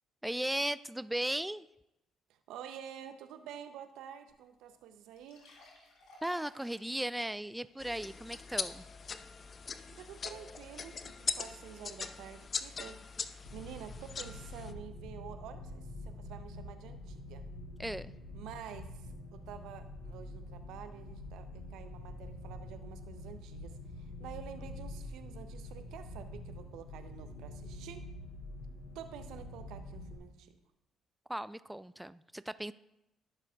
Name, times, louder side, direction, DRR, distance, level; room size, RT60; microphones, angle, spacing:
voice 1, 0.2-1.7 6.2-8.9 17.8-18.1 31.3-32.7, right 1 dB, 5° right, 16 dB, 0.3 m, -36 dB
voice 2, 2.3-5.5 9.9-13.1 13.5-17.4 18.3-28.0 28.9-30.6, right 9 dB, 70° right, 9 dB, 0.7 m, -49 dB
sound 1, 4.3-4.4 4.7-4.8 5.1-8.8 9.2-9.3 9.9-10.0, left 2 dB, 65° left, 3.5 m, -60 dB
sound 2, 7.8-14.7, left 5 dB, 45° left, 0.5 m, -41 dB
sound 3, 13.4-30.2, left 1 dB, 85° left, 3.0 m, -46 dB
18.5 x 6.6 x 2.4 m, 0.89 s
hypercardioid pair, 50°, 0 cm